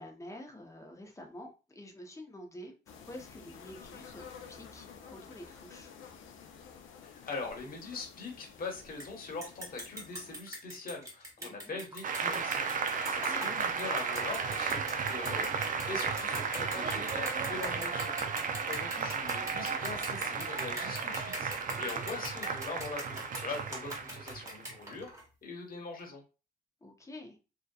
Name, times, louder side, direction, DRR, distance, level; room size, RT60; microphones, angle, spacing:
voice 1, 0.0-4.2 4.5-5.9 11.4-11.8 13.1-13.5 21.7-22.0 26.8-27.4, left 1 dB, 15° left, 2 dB, 0.7 m, -48 dB
sound 1, 2.9-10.4, left 6 dB, 80° left, 0.5 m, -51 dB
voice 2, 7.0-15.5 15.9-18.1 18.5-25.1 25.4-26.2, left 3 dB, 45° left, -1 dB, 1.2 m, -42 dB
sound 2, 9.0-9.1 9.4-25.2, right 1 dB, 15° right, 1.0 m, -42 dB
Applause, 12.0-25.0, right 5 dB, 40° right, 0.4 m, -34 dB
2.8 x 2.2 x 2.3 m, 0.32 s
cardioid pair, 90°, 20 cm